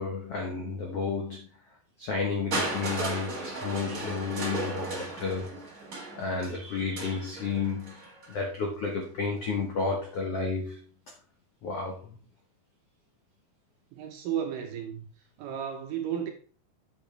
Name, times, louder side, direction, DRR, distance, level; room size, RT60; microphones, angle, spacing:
voice 1, 0.0-1.5 2.0-5.5 6.2-10.8 11.6-12.1, left 4 dB, 80° left, 1.3 m, -32 dB
Crushing, 2.5-8.4 9.4-9.5, right 2 dB, 55° right, 0.9 m, -36 dB
voice 2, 13.9-15.1 15.4-16.3, right 9 dB, 70° right, 2.2 m, -33 dB
8.0 x 7.7 x 3.3 m
omnidirectional pair, 4.7 m